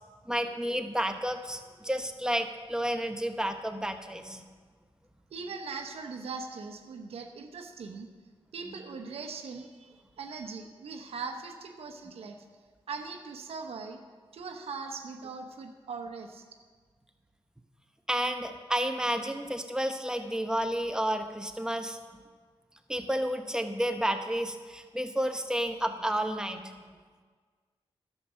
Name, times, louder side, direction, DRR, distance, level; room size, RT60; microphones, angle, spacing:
voice 1, 0.3-4.4 18.1-22.0 22.9-27.0, equal, 5° right, 6 dB, 1.0 m, -31 dB
voice 2, 5.3-8.1 8.5-12.4 12.9-14.0 14.3-16.4, right 4 dB, 85° right, 4 dB, 1.0 m, -40 dB
11.0 x 7.4 x 6.3 m, 1.6 s
cardioid pair, 65°, 10 cm